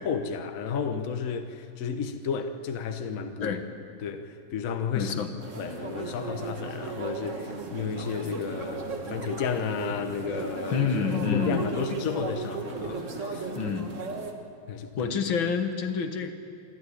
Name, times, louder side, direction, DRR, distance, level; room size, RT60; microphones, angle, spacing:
voice 1, 0.0-3.6 4.0-5.1 5.6-10.9 11.3-13.5 14.7-15.1, left 6 dB, 50° left, 6 dB, 1.3 m, -32 dB
voice 2, 4.9-5.4 10.7-11.7 13.6-14.0 15.0-16.3, left 6 dB, 80° left, 7 dB, 2.1 m, -28 dB
sound 1, 5.4-14.3, right 3 dB, 40° right, 1.7 m, -35 dB
26.5 x 12.5 x 9.9 m, 2.5 s
omnidirectional pair, 2.2 m